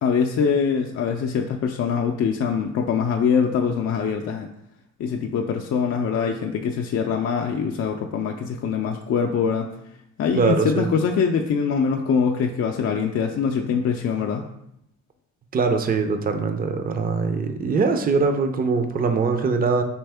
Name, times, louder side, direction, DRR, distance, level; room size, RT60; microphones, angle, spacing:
voice 1, 0.0-4.5 5.0-9.7 10.2-14.4, left 6 dB, 55° left, 2 dB, 0.4 m, -23 dB
voice 2, 10.3-10.9 15.5-19.8, right 4 dB, 30° right, 7 dB, 0.5 m, -22 dB
4.5 x 3.4 x 3.4 m, 0.77 s
cardioid pair, 95°, 29 cm